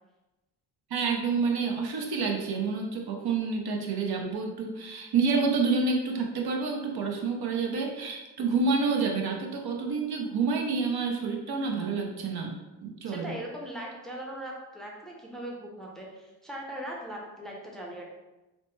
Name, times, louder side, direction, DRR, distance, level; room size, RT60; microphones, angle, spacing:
voice 1, 0.9-12.5 12.8-13.3, right 4 dB, 60° right, 1 dB, 0.6 m, -28 dB
voice 2, 13.0-18.0, right 1 dB, ahead, -2 dB, 0.6 m, -39 dB
2.9 x 2.0 x 3.1 m, 1.1 s
cardioid pair, 75°, 43 cm